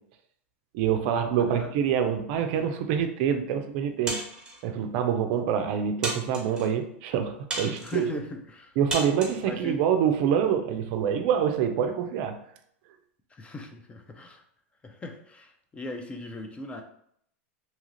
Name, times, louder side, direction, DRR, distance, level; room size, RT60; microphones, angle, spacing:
voice 1, 0.7-4.2 4.6-8.1 8.8-12.4, right 8 dB, 55° right, 6 dB, 0.4 m, -26 dB
voice 2, 1.4-1.7 7.8-8.8 9.4-9.9 13.3-14.4 14.8-16.8, left 2 dB, 15° left, 4 dB, 0.4 m, -39 dB
sound 1, 4.1-4.6 5.3-5.4 6.0-6.7 7.5-8.0 8.9-9.4, right 2 dB, 10° right, 1.0 m, -33 dB
2.8 x 2.4 x 2.9 m, 0.68 s
hypercardioid pair, 110°, 7 cm